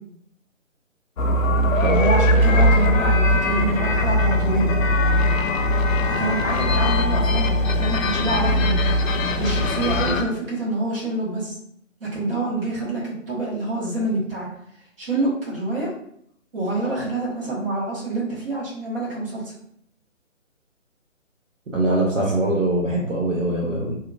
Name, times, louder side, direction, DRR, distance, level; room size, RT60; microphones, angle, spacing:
sound 1, 1.2-10.2, left 1 dB, 85° left, 0.5 m, -20 dB
voice 1, 2.0-4.7 6.1-8.8 9.4-11.6 12.0-14.5 15.0-15.9 16.5-19.5, right 2 dB, 45° right, -5 dB, 1.4 m, -26 dB
voice 2, 21.7-23.9, right 1 dB, 70° right, -2 dB, 0.8 m, -22 dB
2.8 x 2.5 x 2.4 m, 0.68 s
figure-of-eight pair, 155°, 39 cm